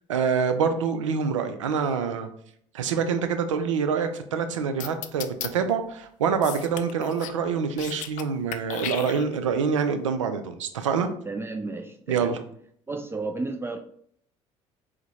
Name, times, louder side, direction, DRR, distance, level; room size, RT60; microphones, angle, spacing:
voice 1, 0.1-2.3 2.7-11.1 12.1-12.4, right 6 dB, 85° right, 8 dB, 0.4 m, -26 dB
sound 1, 4.8-5.5 6.4-7.4 7.7-8.2 8.5-9.5, left 11 dB, 55° left, 0.4 m, -35 dB
voice 2, 11.3-12.3 12.9-13.8, right 3 dB, 15° right, 5 dB, 0.4 m, -32 dB
4.4 x 2.1 x 4.0 m, 0.65 s
hypercardioid pair, 60°, 16 cm